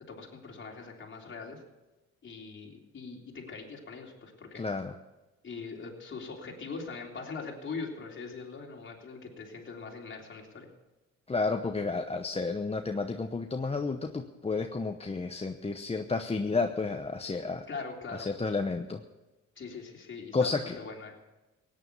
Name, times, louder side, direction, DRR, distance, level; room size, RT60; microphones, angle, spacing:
voice 1, 0.1-1.6 2.2-4.6 5.4-10.7 17.7-18.3 19.5-21.1, left 4 dB, 40° left, 0 dB, 3.5 m, -42 dB
voice 2, 4.6-4.9 11.3-17.6 18.2-19.0 20.3-20.8, left 4 dB, 20° left, 5 dB, 0.8 m, -31 dB
17.0 x 9.8 x 6.9 m, 1.1 s
cardioid pair, 90°, 30 cm